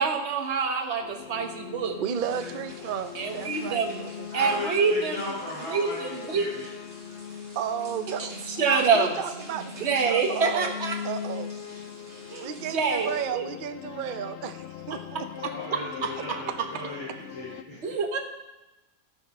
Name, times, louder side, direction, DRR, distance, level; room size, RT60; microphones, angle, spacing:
voice 1, 0.0-2.0 3.1-4.0 4.3-5.3 5.7-6.5 8.2-9.2 9.5-11.0 12.3-13.5 15.7-16.4 17.8-18.2, right 5 dB, 50° right, 3 dB, 1.3 m, -26 dB
sound 1, 1.0-17.6, left 9 dB, 65° left, 0.7 m, -41 dB
voice 2, 2.0-4.3 7.6-10.8 11.0-11.5 12.4-15.0, right 8 dB, 75° right, 10 dB, 0.4 m, -33 dB
sound 2, 2.1-13.3, right 1 dB, 30° right, 2.3 m, -49 dB
voice 3, 4.3-6.7 15.5-17.8, left 1 dB, 20° left, -10 dB, 3.8 m, -37 dB
12.5 x 6.5 x 5.3 m, 1.0 s
omnidirectional pair, 1.6 m